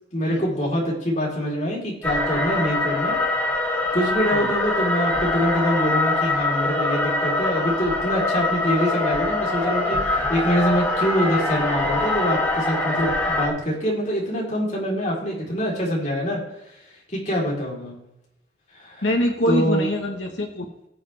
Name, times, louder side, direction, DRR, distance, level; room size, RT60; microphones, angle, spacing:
voice 1, 0.1-3.2 3.7-16.4 17.1-18.0 18.7-19.1 19.5-19.9, equal, 40° left, -3 dB, 3.8 m, -25 dB
sound 1, 2.0-13.5, left 2 dB, 10° left, 1.8 m, -23 dB
voice 2, 19.0-20.9, left 1 dB, 85° left, 1 dB, 1.3 m, -24 dB
18.0 x 7.4 x 3.4 m, 0.88 s
head